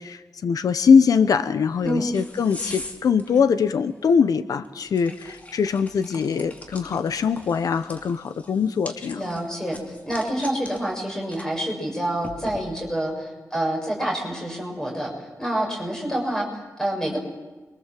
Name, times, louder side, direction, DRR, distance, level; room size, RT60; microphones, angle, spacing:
voice 1, 0.0-9.3, left 6 dB, 85° left, 11 dB, 1.0 m, -22 dB
Opening a bottle and filling a glas, 1.6-13.1, left 1 dB, 25° left, 2.6 m, -43 dB
voice 2, 9.2-17.2, right 1 dB, 10° left, 0 dB, 6.6 m, -27 dB
28.0 x 24.0 x 7.6 m, 1.3 s
wide cardioid pair, 175°, 6 cm